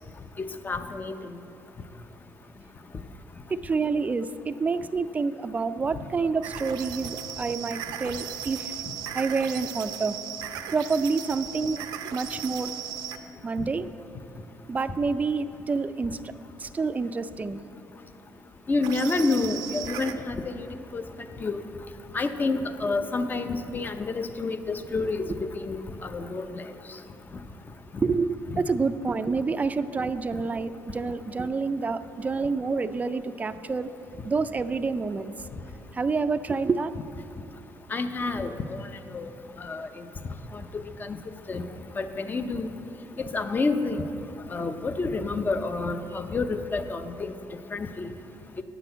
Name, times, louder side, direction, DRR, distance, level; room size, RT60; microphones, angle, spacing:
voice 1, 0.4-1.2 18.7-21.0 21.4-21.6 22.1-26.5 28.5-28.6 37.9-38.8 39.1-39.3 39.6-39.9 40.5-40.6 41.0-41.2 41.5-41.6 42.0-42.7 43.2-44.1 44.5-47.3 47.7-48.1, left 3 dB, 25° left, 9 dB, 0.6 m, -29 dB
voice 2, 3.5-8.8 9.1-10.2 10.7-11.8 12.1-12.7 13.4-13.9 14.7-16.3 16.6-17.6 28.0-33.9 34.2-35.3 35.9-36.9, right 4 dB, 20° right, 11 dB, 0.4 m, -28 dB
sound 1, 6.4-13.2 18.8-20.2, right 9 dB, 90° right, 0.5 m, -37 dB
9.1 x 6.1 x 7.9 m, 2.8 s
cardioid pair, 110°, 7 cm